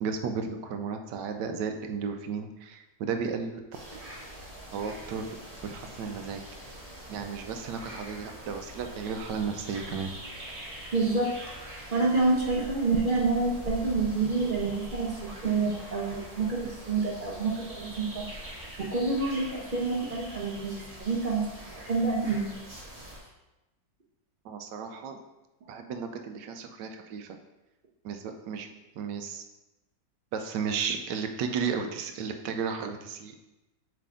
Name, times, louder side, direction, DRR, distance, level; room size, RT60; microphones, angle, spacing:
voice 1, 0.0-3.6 4.7-5.4 5.6-6.4 7.1-10.2 24.4-25.2 25.7-27.4 28.0-28.7 28.9-29.4 30.3-33.4, right 6 dB, 85° right, 6 dB, 1.3 m, -34 dB
sound 1, 3.7-23.2, equal, 25° right, 1.2 m, -43 dB
voice 2, 10.9-11.3 11.6-18.2 18.8-21.4 21.8-22.5, right 3 dB, 40° right, -2 dB, 0.7 m, -28 dB
7.7 x 3.3 x 3.7 m, 1.0 s
omnidirectional pair, 1.9 m